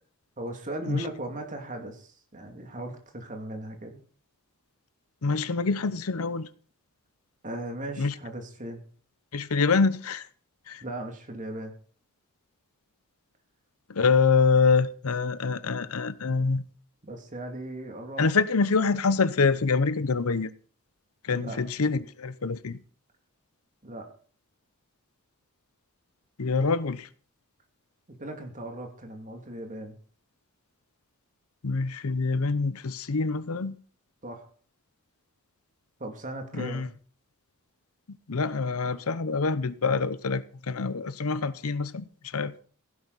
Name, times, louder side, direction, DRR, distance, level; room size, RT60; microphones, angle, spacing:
voice 1, 0.4-4.0 7.4-8.8 10.8-11.7 17.0-18.2 21.3-21.6 23.8-24.1 28.1-30.0 34.2-34.5 36.0-36.9, right 1 dB, 35° right, 2.5 m, -37 dB
voice 2, 5.2-6.5 8.0-8.1 9.3-10.3 10.7-10.8 13.9-16.7 18.2-20.5 21.2-22.8 26.4-27.1 31.6-33.8 36.5-36.9 38.3-42.0 42.3-42.5, left 4 dB, 75° left, 0.7 m, -25 dB
16.0 x 11.0 x 4.1 m
head